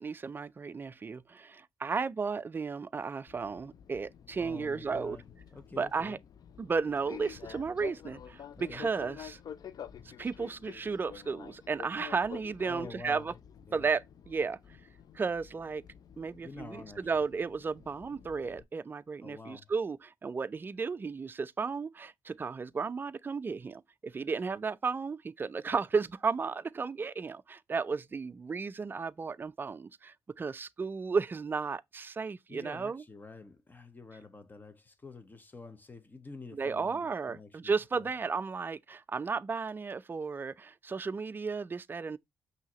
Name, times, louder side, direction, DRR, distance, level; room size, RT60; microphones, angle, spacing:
voice 1, 0.0-5.2 5.7-6.2 6.6-9.4 10.2-13.3 13.7-14.6 15.1-15.8 16.2-33.0 36.5-42.2, right 5 dB, 30° right, 0.3 m, -34 dB
Fixed-wing aircraft airplane, 3.3-18.6, left 8 dB, 60° left, 0.4 m, -49 dB
voice 2, 4.4-5.2 5.5-6.2 8.6-8.9 12.6-13.4 13.7-13.9 16.4-17.2 19.2-19.7 32.5-38.1, left 3 dB, 25° left, 0.9 m, -48 dB
5.7 x 2.8 x 2.9 m
cardioid pair, 80°, 7 cm